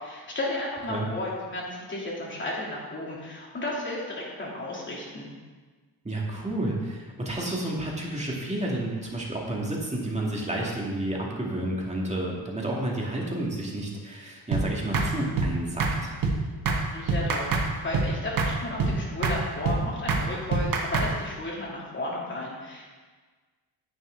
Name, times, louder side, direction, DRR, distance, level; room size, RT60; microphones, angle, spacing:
voice 1, 0.0-5.3 16.9-22.9, left 1 dB, 30° left, -4 dB, 2.8 m, -33 dB
voice 2, 6.0-16.1, right 1 dB, 15° right, -3 dB, 2.1 m, -30 dB
sound 1, 14.5-14.6 14.9-15.1 15.4-15.5 15.8-15.9 16.2-16.4 16.6-16.8 17.1-17.7 17.9-18.1 18.4-18.5 18.8-18.9 19.2-19.4 19.6-19.8 20.1-20.2 20.5-21.1, right 4 dB, 55° right, 1.4 m, -24 dB
9.9 x 8.7 x 3.9 m, 1.4 s
cardioid pair, 125°, 41 cm